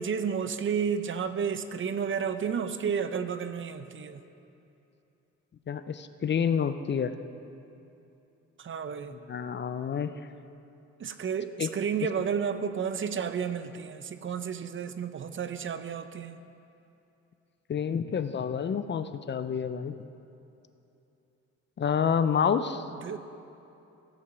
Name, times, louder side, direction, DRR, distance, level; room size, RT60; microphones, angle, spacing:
voice 1, 0.0-4.2 8.6-9.2 11.0-16.4 23.0-23.2, right 7 dB, 40° right, 11 dB, 0.6 m, -31 dB
voice 2, 5.7-7.1 9.3-10.1 11.6-11.7 17.7-20.0 21.8-22.8, left 7 dB, 35° left, 11 dB, 0.5 m, -28 dB
16.5 x 5.5 x 6.7 m, 2.8 s
cardioid pair, 90°, 30 cm